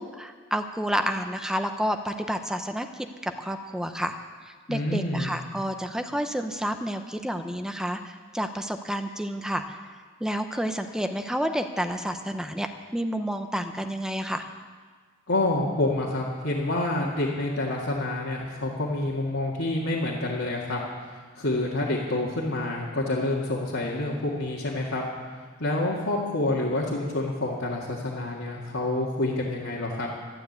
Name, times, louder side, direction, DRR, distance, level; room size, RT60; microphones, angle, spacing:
voice 1, 0.0-4.2 4.4-9.8 10.2-14.4, equal, 5° right, 7 dB, 0.6 m, -30 dB
voice 2, 4.7-5.4 15.3-20.8 21.3-25.0 25.6-30.1, left 2 dB, 75° left, -5 dB, 2.0 m, -27 dB
12.0 x 11.5 x 8.0 m, 1.5 s
head